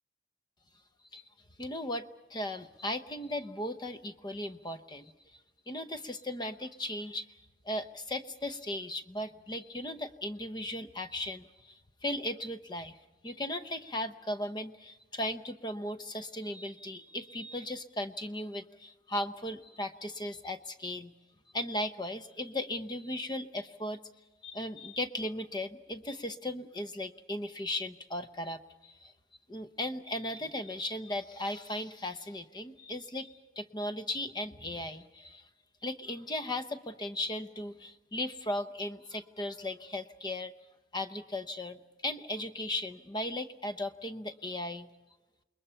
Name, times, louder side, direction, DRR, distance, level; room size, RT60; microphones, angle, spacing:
voice 1, 1.6-5.1 5.7-7.3 7.6-11.7 12.0-13.0 13.2-21.1 21.5-24.0 24.4-29.1 29.5-35.4 35.8-40.5 40.9-44.9, left 1 dB, 25° left, 10 dB, 0.8 m, -37 dB
28.5 x 21.0 x 5.7 m, 1.1 s
head